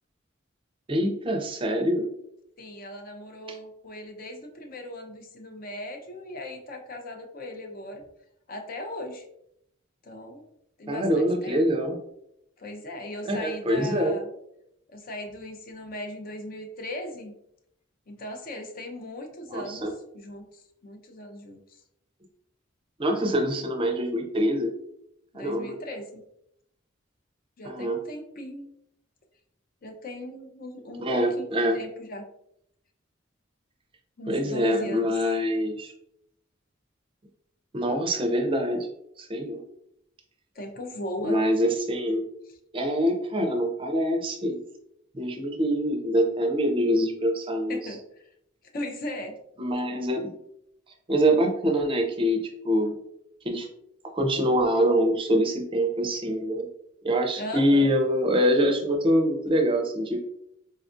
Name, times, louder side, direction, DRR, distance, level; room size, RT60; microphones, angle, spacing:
voice 1, 0.9-2.1 10.9-12.0 13.3-14.2 19.5-19.9 23.0-24.7 25.3-25.8 27.6-28.0 31.0-31.8 34.3-35.9 37.7-38.9 39.2-39.6 41.2-42.2 42.7-44.6 45.1-47.8 49.6-50.3 51.1-52.4 52.6-53.0 53.4-53.7 54.1-56.7 57.0-60.2, equal, 25° right, 3 dB, 0.5 m, -24 dB
voice 2, 2.6-8.1 8.5-9.3 10.0-10.5 10.8-11.6 12.6-14.3 14.9-17.3 18.1-21.8 25.3-26.2 27.6-28.7 29.8-32.2 34.2-35.2 40.5-41.4 42.5-42.6 47.7-48.0 48.7-49.4 57.4-57.9, left 1 dB, 50° left, 4 dB, 0.5 m, -38 dB
4.2 x 2.3 x 2.5 m, 0.76 s
head